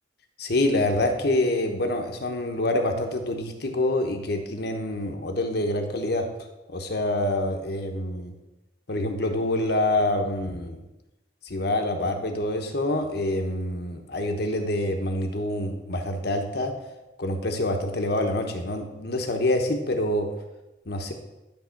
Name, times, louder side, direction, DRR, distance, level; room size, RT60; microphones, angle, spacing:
voice 1, 0.4-6.3 6.7-8.3 8.9-10.8 11.4-16.7 17.2-20.3 20.9-21.1, left 1 dB, 55° left, 4 dB, 1.0 m, -26 dB
10.5 x 3.6 x 5.8 m, 1.0 s
head